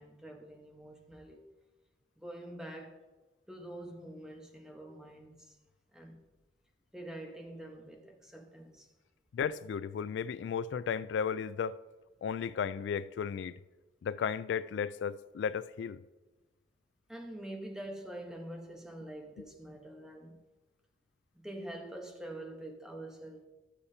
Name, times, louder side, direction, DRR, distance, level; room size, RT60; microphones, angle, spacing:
voice 1, 0.0-1.4 2.2-3.0 3.5-5.6 5.9-6.2 6.9-8.9 17.1-20.4 21.3-23.5, right 1 dB, 5° right, 1.0 m, -45 dB
voice 2, 9.3-11.8 12.2-13.6 14.0-16.0, left 7 dB, 85° left, 0.3 m, -34 dB
13.0 x 7.1 x 2.8 m
head